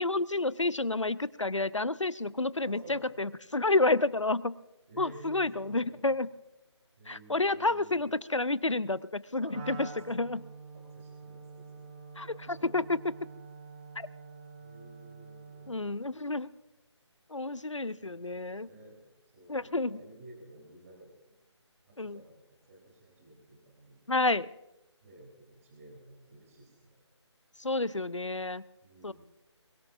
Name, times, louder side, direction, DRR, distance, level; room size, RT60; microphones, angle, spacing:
voice 1, 0.0-4.5 5.0-6.3 7.1-10.4 12.2-13.1 14.0-14.1 15.7-16.5 17.3-18.7 19.5-20.0 22.0-22.2 24.1-24.5 27.6-28.6 29.0-29.1, left 2 dB, 90° left, 19 dB, 0.6 m, -30 dB
voice 2, 2.6-3.0 4.9-6.2 7.0-8.2 9.4-10.2 10.7-11.9 12.6-12.7 14.6-16.3 17.8-19.0 19.3-21.1 21.9-22.4 22.7-24.0 25.0-27.0 28.8-29.1, right 1 dB, 30° right, -1 dB, 3.7 m, -52 dB
Wind instrument woodwind instrument, 9.5-15.9, right 4 dB, 15° right, 1.2 m, -47 dB
22.5 x 21.0 x 2.6 m, 0.94 s
figure-of-eight pair, 155°, 15 cm